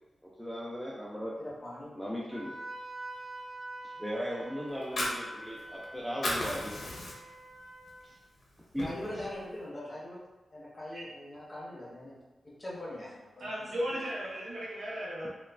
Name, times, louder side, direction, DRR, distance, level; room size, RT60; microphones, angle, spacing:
voice 1, 0.2-1.3 2.0-2.5 3.8-7.0 8.0-8.1 8.7-8.9 10.9-11.0, equal, ahead, -5 dB, 0.3 m, -37 dB
voice 2, 1.4-1.9 8.8-10.2 10.5-12.2 12.4-13.5, left 1 dB, 30° left, -7 dB, 0.9 m, -42 dB
Wind instrument woodwind instrument, 2.3-8.1, right 1 dB, 70° right, 1.1 m, -45 dB
Fire, 4.7-5.8 6.1-7.5 7.9-8.0 8.4-9.4, left 1 dB, 60° left, 0.6 m, -35 dB
voice 3, 13.4-15.3, equal, 90° right, -6 dB, 0.8 m, -35 dB
2.9 x 2.2 x 2.4 m, 1.1 s
wide cardioid pair, 125°, 0 cm